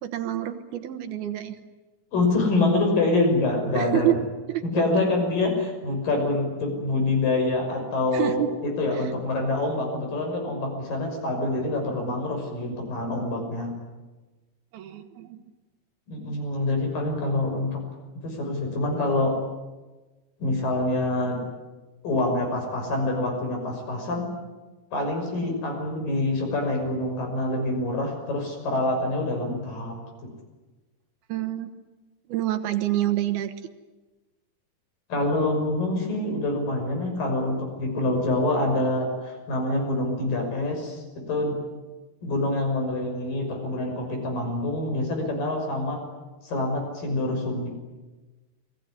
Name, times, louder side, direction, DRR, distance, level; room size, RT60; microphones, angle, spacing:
voice 1, 0.0-1.6 3.7-4.2 4.5-4.8 8.1-8.6 8.9-9.0 14.7-15.4 31.3-31.7 32.3-33.5, right 13 dB, 70° right, 9 dB, 3.1 m, -27 dB
voice 2, 2.1-4.1 4.6-13.7 16.1-17.8 18.2-19.4 20.4-21.4 22.0-24.3 24.9-30.0 35.1-41.6 42.2-46.0 46.4-47.7, left 2 dB, 55° left, 3 dB, 7.6 m, -26 dB
29.5 x 20.5 x 9.8 m, 1.2 s
omnidirectional pair, 4.7 m